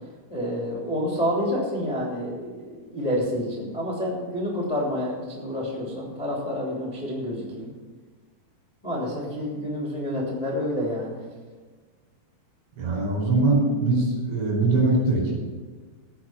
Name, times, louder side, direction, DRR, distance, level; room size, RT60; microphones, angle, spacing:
voice 1, 0.3-7.7 8.8-11.2, equal, 10° left, -5 dB, 1.9 m, -28 dB
voice 2, 12.8-15.3, right 2 dB, 80° right, -2 dB, 6.7 m, -22 dB
17.0 x 6.5 x 5.8 m, 1.4 s
omnidirectional pair, 5.2 m